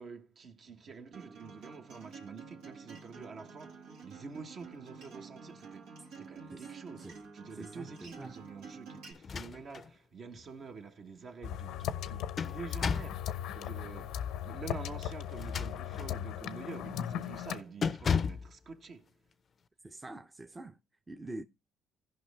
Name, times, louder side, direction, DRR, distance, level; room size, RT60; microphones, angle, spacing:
voice 1, 0.0-19.1, right 5 dB, 55° right, 1.3 m, -47 dB
Acoustic guitar, 1.1-9.1, right 5 dB, 85° right, 1.9 m, -49 dB
voice 2, 7.5-7.9 8.2-8.4 19.8-20.8 21.1-21.4, right 2 dB, 20° right, 0.7 m, -45 dB
sound 1, 9.2-9.9 10.3-10.4 11.9-13.2 15.3-16.2 16.7-16.9 17.2-17.4 17.8-18.5, left 6 dB, 45° left, 0.5 m, -34 dB
sound 2, 11.4-17.6, left 10 dB, 80° left, 0.7 m, -38 dB
16.5 x 5.5 x 3.3 m
supercardioid pair, 80°, 0 cm